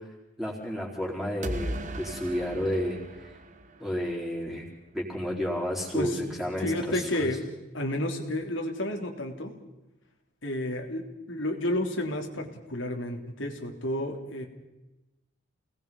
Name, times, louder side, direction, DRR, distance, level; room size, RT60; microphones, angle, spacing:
voice 1, 0.4-3.3 3.8-4.7 4.9-7.0, equal, ahead, -3 dB, 4.6 m, -31 dB
sound 1, 1.4-4.3, right 1 dB, 40° right, 1.4 m, -37 dB
voice 2, 6.6-7.4 7.7-9.5 10.4-14.4, left 1 dB, 75° left, 2 dB, 3.4 m, -31 dB
29.5 x 19.5 x 5.5 m, 1.0 s
head